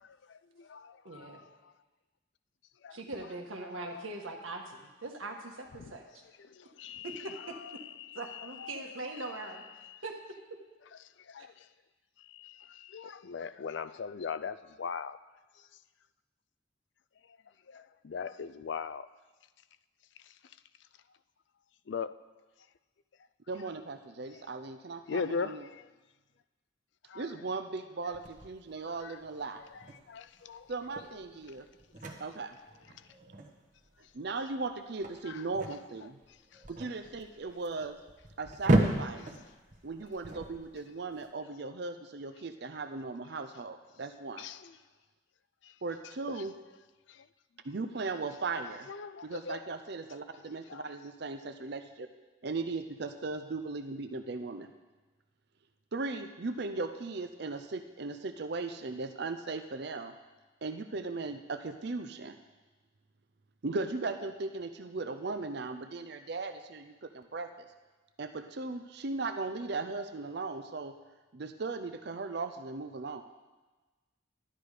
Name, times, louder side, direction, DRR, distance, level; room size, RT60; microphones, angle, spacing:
voice 1, 0.3-1.4 2.8-3.0 3.8-4.0 6.8-7.2 7.6-7.9 8.3-8.9 11.3-11.5 12.3-15.2 17.7-19.1 21.9-22.1 25.1-25.9 27.1-27.3 29.0-29.1 30.1-30.7 35.3-35.4 44.4-44.7 45.6-45.7 47.1-47.2 48.9-49.6 50.7-50.9, left 5 dB, 65° left, 0.4 m, -39 dB
voice 2, 1.0-1.4 2.9-6.0 7.0-7.6 8.2-9.6 10.0-10.1 11.4-11.5, right 2 dB, 90° right, 1.6 m, -41 dB
voice 3, 23.5-25.7 27.1-29.6 30.7-31.7 32.2-32.6 34.1-36.2 36.7-37.9 38.4-39.3 39.8-44.5 45.8-46.5 47.6-48.9 49.2-52.1 52.4-54.7 55.9-60.2 60.6-62.4 63.6-67.5 68.2-70.9 71.3-73.2, right 3 dB, 55° right, 0.5 m, -37 dB
sound 1, 28.1-41.2, right 1 dB, 40° right, 1.1 m, -35 dB
12.5 x 10.0 x 5.0 m
head